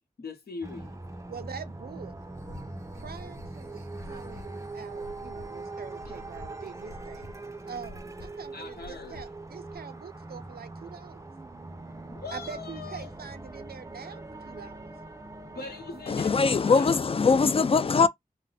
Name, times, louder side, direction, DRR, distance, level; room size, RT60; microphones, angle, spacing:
voice 1, 0.2-1.0 6.1-6.2 8.5-9.2 12.0-13.1 15.5-17.0, left 4 dB, 90° left, 0.9 m, -41 dB
sound 1, 0.6-16.2, right 2 dB, 20° right, 0.5 m, -42 dB
voice 2, 1.3-2.1 2.9-7.3 7.7-11.3 12.3-14.9, right 6 dB, 80° right, 0.5 m, -44 dB
sound 2, 2.3-9.8, left 1 dB, 65° left, 0.9 m, -49 dB
voice 3, 16.1-18.1, left 5 dB, 35° left, 0.4 m, -21 dB
2.7 x 2.1 x 4.0 m
wide cardioid pair, 65°, 16 cm